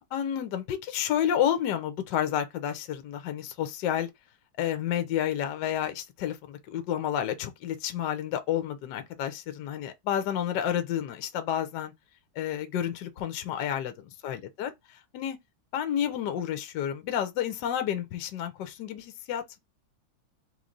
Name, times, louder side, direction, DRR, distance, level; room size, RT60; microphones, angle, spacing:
voice 1, 0.1-4.1 4.6-11.9 12.4-13.9 14.2-14.7 15.1-15.4 15.7-19.6, left 10 dB, 65° left, 1.2 m, -30 dB
3.8 x 3.1 x 3.8 m
omnidirectional pair, 2.3 m